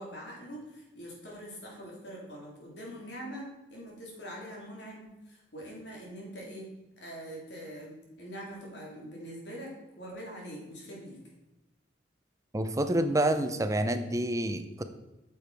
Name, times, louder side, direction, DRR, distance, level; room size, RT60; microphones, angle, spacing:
voice 1, 0.0-11.2, equal, 65° left, -2 dB, 2.9 m, -44 dB
voice 2, 12.5-14.8, right 1 dB, 20° right, 9 dB, 0.6 m, -28 dB
8.5 x 6.7 x 4.6 m, 1.0 s
head